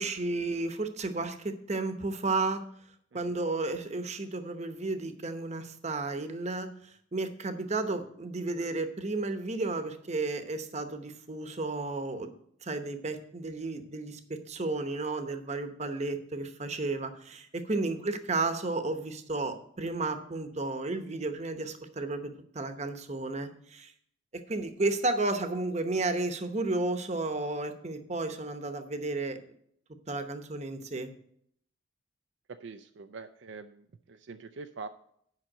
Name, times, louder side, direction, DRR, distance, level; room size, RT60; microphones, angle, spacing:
voice 1, 0.0-2.6 3.1-6.7 7.1-12.3 12.6-23.9 24.3-29.4 30.1-31.1, right 3 dB, 35° right, 9 dB, 0.9 m, -33 dB
voice 2, 32.5-34.9, right 4 dB, 65° right, 7 dB, 0.5 m, -45 dB
8.9 x 5.7 x 7.7 m, 0.67 s
head